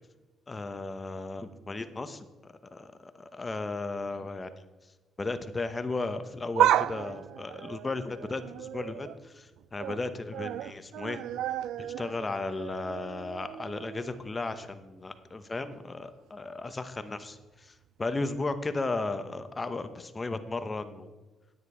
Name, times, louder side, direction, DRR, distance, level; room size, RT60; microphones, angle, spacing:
voice 1, 0.5-2.2 2.7-4.5 5.2-11.2 11.8-21.1, left 3 dB, 25° left, 10 dB, 1.0 m, -35 dB
sound 1, 6.3-9.2 9.6-10.0 10.3-14.2 14.6-14.7 15.7-15.8, right 12 dB, 85° right, 0.3 m, -32 dB
9.5 x 9.4 x 5.0 m, 1.2 s
cardioid pair, 90°, 0 cm